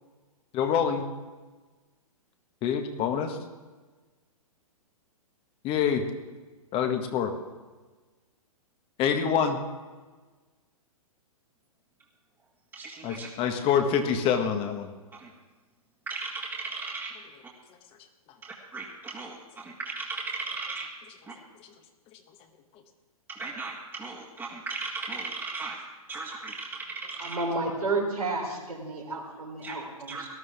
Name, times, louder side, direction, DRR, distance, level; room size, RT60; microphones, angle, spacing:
voice 1, 0.5-1.1 2.6-3.4 5.6-6.0 6.7-7.3 9.0-9.6 13.0-14.9, left 7 dB, 30° left, 6 dB, 1.6 m, -26 dB
voice 2, 12.7-13.3 15.1-15.3 16.1-17.1 18.4-20.9 21.3-21.4 23.3-25.8 26.1-27.4 29.6-29.8 30.1-30.3, right 3 dB, 15° right, -6 dB, 1.9 m, -37 dB
voice 3, 27.2-30.2, right 3 dB, 90° right, -1 dB, 3.9 m, -31 dB
19.0 x 13.0 x 3.6 m, 1.3 s
figure-of-eight pair, 120°, 19 cm